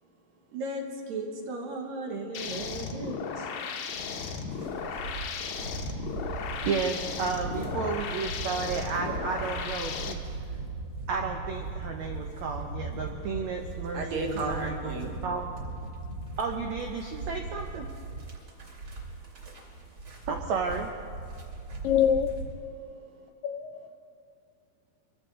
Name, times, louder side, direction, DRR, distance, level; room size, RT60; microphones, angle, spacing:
voice 1, 0.5-4.1 4.4-5.0 5.2-5.4 13.1-13.3 13.9-15.2 21.4-21.5 23.2-23.3, right 2 dB, 65° right, 1 dB, 3.1 m, -36 dB
sound 1, 2.3-10.1, left 5 dB, 65° left, 1.9 m, -35 dB
sound 2, 4.5-22.5, right 3 dB, 35° right, 2.7 m, -39 dB
voice 2, 6.7-10.2 11.1-15.4 16.4-17.8 20.3-20.9, right 5 dB, 90° right, 2 dB, 1.5 m, -32 dB
voice 3, 21.8-22.3 23.4-23.9, left 9 dB, 90° left, 7 dB, 1.9 m, -25 dB
24.5 x 15.0 x 3.8 m, 2.4 s
omnidirectional pair, 4.5 m